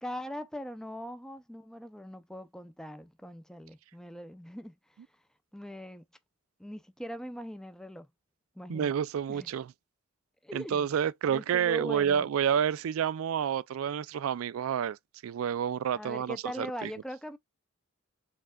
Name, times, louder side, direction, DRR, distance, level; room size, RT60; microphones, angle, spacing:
voice 1, 0.0-4.7 5.5-6.1 6.6-8.1 8.6-8.9 9.3-9.5 10.4-10.9 11.3-12.3 15.9-17.4, equal, 5° left, 0.5 m, -41 dB
voice 2, 8.7-9.7 10.5-15.0 15.2-16.9, right 8 dB, 90° right, 0.3 m, -29 dB
4.4 x 3.6 x 2.3 m
head